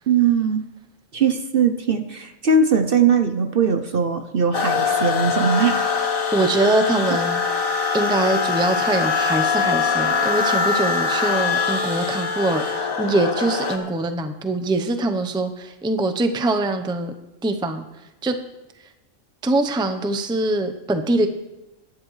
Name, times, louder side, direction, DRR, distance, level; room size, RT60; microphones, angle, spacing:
voice 1, 0.1-0.6 1.1-5.9, right 5 dB, 50° right, 8 dB, 0.8 m, -20 dB
sound 1, 4.5-13.8, left 5 dB, 90° left, 2.1 m, -23 dB
voice 2, 6.3-7.4 7.9-17.1 17.4-17.8 18.2-18.3 19.4-21.3, right 2 dB, 5° right, 7 dB, 0.5 m, -23 dB
21.0 x 10.5 x 3.2 m, 0.98 s
omnidirectional pair, 1.4 m